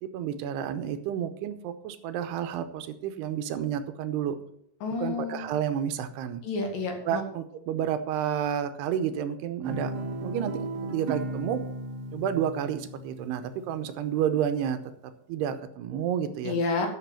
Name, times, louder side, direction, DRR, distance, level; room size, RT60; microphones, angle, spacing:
voice 1, 0.0-4.4 5.0-6.4 7.0-9.9 10.2-11.6 12.1-14.8 15.3-16.6, right 9 dB, 85° right, 10 dB, 2.9 m, -30 dB
voice 2, 4.8-5.5 6.4-7.2 16.4-16.9, left 3 dB, 60° left, 2 dB, 3.4 m, -29 dB
Guitar, 9.6-14.0, right 2 dB, 55° right, 1.8 m, -35 dB
11.5 x 6.1 x 7.4 m, 0.72 s
omnidirectional pair, 4.7 m